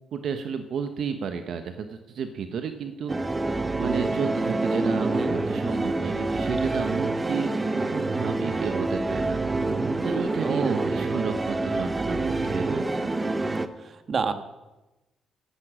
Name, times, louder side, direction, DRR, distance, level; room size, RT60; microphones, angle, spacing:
voice 1, 0.1-3.1 3.8-7.5 7.8-9.4 10.0-13.1, right 6 dB, 65° right, 8 dB, 1.1 m, -32 dB
sound 1, 3.1-13.7, right 2 dB, 20° right, 1.0 m, -27 dB
voice 2, 5.0-5.4 10.4-11.0 13.8-14.3, right 5 dB, 45° right, 8 dB, 1.4 m, -29 dB
15.0 x 11.5 x 6.2 m, 1.1 s
cardioid pair, 90°, 0 cm